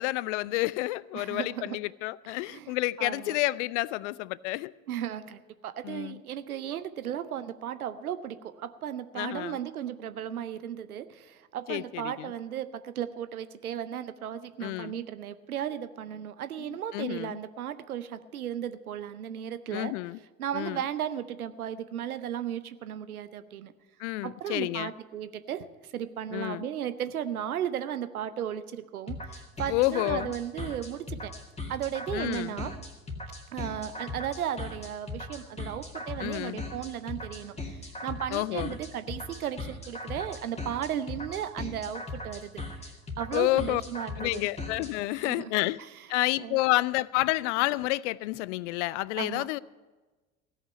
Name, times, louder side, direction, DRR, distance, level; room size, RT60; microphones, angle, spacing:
voice 1, 0.0-4.7 5.8-6.2 9.2-9.6 11.7-12.3 14.6-14.9 16.7-17.4 19.7-20.2 20.5-20.8 24.0-24.9 26.3-26.7 29.7-30.3 32.1-32.6 36.2-36.6 38.3-38.8 43.3-43.8 44.2-45.8 46.1-49.6, left 19 dB, 55° left, 0.5 m, -29 dB
voice 2, 1.1-1.8 2.4-3.4 4.9-19.9 20.4-23.7 24.2-31.3 31.7-32.7 33.5-37.6 38.0-42.9 43.2-44.4 45.2-45.5 46.4-46.6 49.2-49.5, right 10 dB, 80° right, 0.7 m, -35 dB
sound 1, 29.1-44.9, left 2 dB, 15° left, 2.0 m, -38 dB
16.0 x 5.8 x 9.2 m
figure-of-eight pair, 65°, 43 cm